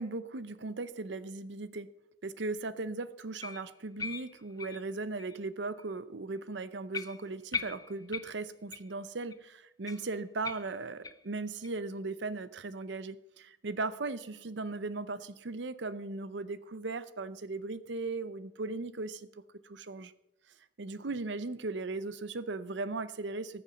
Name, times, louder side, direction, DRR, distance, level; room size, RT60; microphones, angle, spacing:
voice 1, 0.0-1.9 2.2-19.3 19.6-20.1 20.8-23.6, right 3 dB, 70° right, 14 dB, 0.7 m, -37 dB
sound 1, 3.4-5.4 5.8-5.9 6.4-6.5 6.9-9.0 9.3-9.4 9.9-11.3 11.6-11.7 12.2-12.3 12.8-12.9, left 5 dB, 20° left, 0.5 m, -41 dB
19.5 x 7.0 x 5.2 m, 0.85 s
head